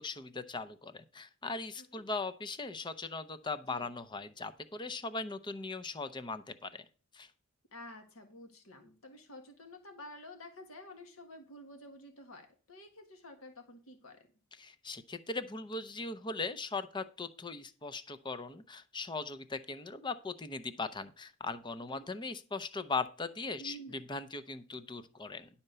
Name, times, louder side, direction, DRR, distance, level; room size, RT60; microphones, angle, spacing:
voice 1, 0.0-6.8 7.1-7.3 14.6-25.5, left 3 dB, 20° left, 12 dB, 0.6 m, -39 dB
voice 2, 7.7-14.3 21.9-22.1 23.6-24.1, equal, 80° left, 4 dB, 1.7 m, -51 dB
11.0 x 4.4 x 6.8 m, 0.36 s
head